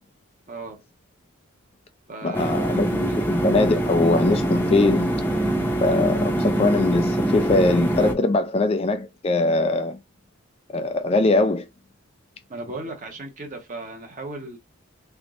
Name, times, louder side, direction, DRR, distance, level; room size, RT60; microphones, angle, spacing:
voice 1, 0.5-0.8 2.1-3.2 12.5-14.6, right 2 dB, 35° right, 1.0 m, -37 dB
voice 2, 2.2-5.3 5.8-10.0 10.7-11.7, left 2 dB, 25° left, 0.3 m, -22 dB
sound 1, 2.3-8.1, right 1 dB, 10° left, 0.7 m, -24 dB
3.7 x 3.5 x 2.5 m
head